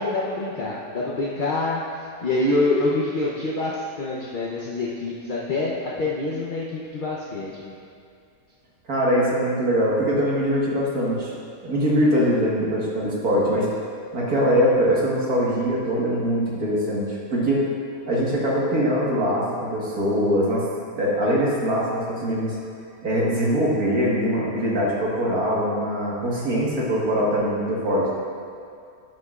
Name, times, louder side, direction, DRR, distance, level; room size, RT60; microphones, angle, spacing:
voice 1, 0.0-1.8 2.2-6.6 6.9-7.8, left 2 dB, 45° left, -5 dB, 0.7 m, -26 dB
voice 2, 8.9-11.3 11.6-13.7 14.1-17.6 18.1-20.6 21.0-22.6 23.0-28.1, equal, 60° right, -5 dB, 2.0 m, -22 dB
11.5 x 8.7 x 2.4 m, 2.4 s
omnidirectional pair, 1.7 m